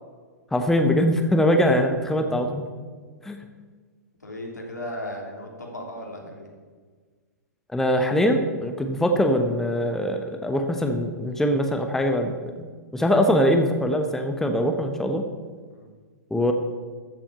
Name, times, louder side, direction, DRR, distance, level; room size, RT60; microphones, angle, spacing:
voice 1, 0.5-2.6 3.2-3.4 7.7-12.3 12.6-12.7 12.9-15.3 16.3-16.5, equal, 5° left, 5 dB, 1.0 m, -22 dB
voice 2, 2.2-2.6 4.2-6.5 15.7-15.9, left 1 dB, 80° left, 0 dB, 3.1 m, -36 dB
14.0 x 7.5 x 6.5 m, 1.5 s
figure-of-eight pair, 105°, 9 cm